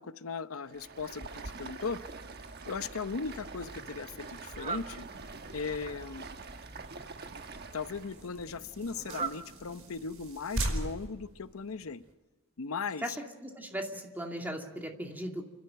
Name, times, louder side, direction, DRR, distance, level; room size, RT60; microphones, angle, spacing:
voice 1, 0.0-2.0 2.7-5.0 5.5-6.3 7.7-12.0 12.6-13.0, left 5 dB, 85° left, 12 dB, 0.8 m, -38 dB
Stream, 0.6-8.2, right 3 dB, 50° right, 1.2 m, -45 dB
sound 1, 2.0-12.1, right 1 dB, 80° right, 5.0 m, -43 dB
Fowl, 3.1-10.5, right 5 dB, 30° right, 0.8 m, -45 dB
voice 2, 13.4-15.4, equal, 10° right, 2 dB, 2.5 m, -37 dB
29.5 x 12.5 x 8.9 m, 1.2 s
head